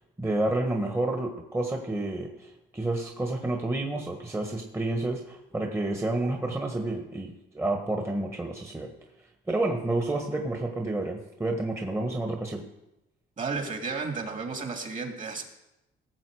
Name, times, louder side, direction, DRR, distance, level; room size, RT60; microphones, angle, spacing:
voice 1, 0.2-8.9 9.5-12.6, right 2 dB, 10° right, 2 dB, 1.4 m, -30 dB
voice 2, 13.4-15.4, right 4 dB, 40° right, 3 dB, 2.5 m, -33 dB
17.5 x 7.1 x 4.9 m, 0.91 s
cardioid pair, 90°, 21 cm